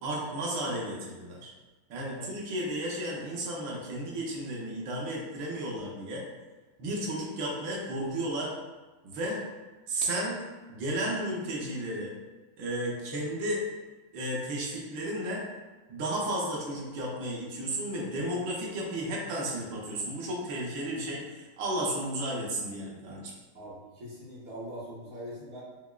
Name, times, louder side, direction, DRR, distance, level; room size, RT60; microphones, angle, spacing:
voice 1, 0.0-1.5 1.9-6.2 6.8-8.5 9.0-9.4 9.9-10.4 10.7-12.1 12.6-13.6 14.1-15.4 15.9-23.3, right 1 dB, 70° right, -3 dB, 1.5 m, -33 dB
voice 2, 23.5-25.6, equal, 55° right, -7 dB, 1.3 m, -42 dB
5.7 x 2.1 x 2.3 m, 1.2 s
omnidirectional pair, 2.2 m